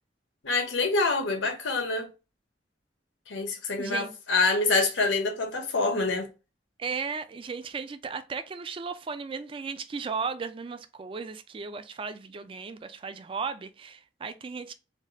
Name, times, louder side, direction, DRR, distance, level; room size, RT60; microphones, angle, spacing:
voice 1, 0.4-2.1 3.3-6.3, left 3 dB, 85° left, 0.8 m, -26 dB
voice 2, 3.8-4.1 6.8-14.7, right 5 dB, 30° right, 0.3 m, -35 dB
3.3 x 2.3 x 2.7 m
head